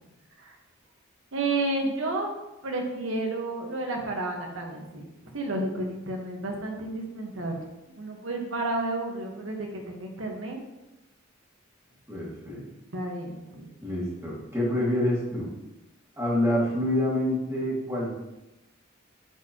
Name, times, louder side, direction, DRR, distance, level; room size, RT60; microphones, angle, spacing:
voice 1, 1.3-2.3 2.6-7.6 8.0-10.6 12.9-13.7, right 2 dB, 75° right, 1 dB, 1.3 m, -31 dB
voice 2, 12.1-12.6 13.8-15.5 16.2-18.2, left 1 dB, 15° right, -6 dB, 2.0 m, -27 dB
9.5 x 4.5 x 2.9 m, 0.97 s
head